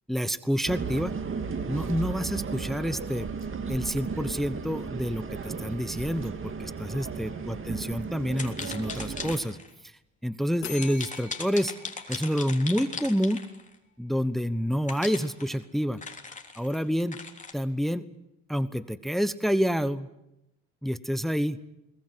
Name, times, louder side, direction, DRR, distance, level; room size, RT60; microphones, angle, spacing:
voice 1, 0.1-1.1 1.7-3.3 3.7-9.6 10.2-11.7 12.1-13.4 14.0-16.0 16.6-17.2 17.5-18.0 18.5-20.1 20.8-21.6, equal, ahead, 14 dB, 1.1 m, -28 dB
sound 1, 0.7-9.4, right 5 dB, 45° right, 2.3 m, -35 dB
sound 2, 8.3-9.7 10.8-13.7 14.9-17.5, left 4 dB, 25° left, 3.5 m, -39 dB
sound 3, 10.6-13.4, left 8 dB, 65° left, 3.7 m, -44 dB
22.0 x 20.0 x 9.7 m, 0.88 s
cardioid pair, 90°, 30 cm